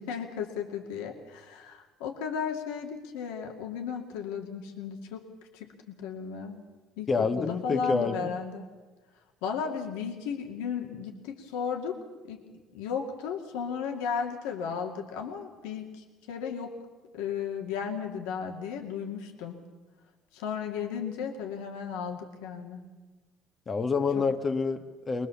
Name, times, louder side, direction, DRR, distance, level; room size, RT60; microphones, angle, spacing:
voice 1, 0.0-5.3 5.5-6.6 7.0-8.7 9.4-12.0 12.3-12.4 12.7-16.7 17.1-19.6 20.3-22.8 24.2-24.3, left 7 dB, 85° left, 2 dB, 2.4 m, -35 dB
voice 2, 7.1-8.3 23.7-25.3, left 4 dB, 35° left, 6 dB, 1.6 m, -28 dB
24.0 x 20.0 x 7.1 m, 1.3 s
supercardioid pair, 80°, 0 cm